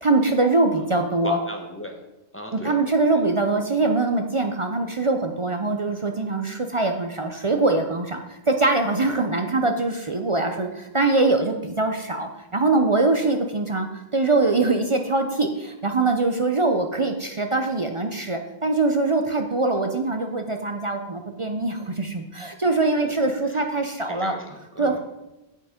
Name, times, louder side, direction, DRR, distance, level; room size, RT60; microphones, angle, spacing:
voice 1, 0.0-1.4 2.5-24.3 24.8-25.0, right 3 dB, 35° right, 5 dB, 0.6 m, -23 dB
voice 2, 0.9-1.9 2.3-2.7 3.1-3.2 23.5-23.6 24.1-25.0, left 1 dB, 10° left, 2 dB, 1.1 m, -36 dB
7.8 x 7.1 x 5.0 m, 0.99 s
omnidirectional pair, 1.1 m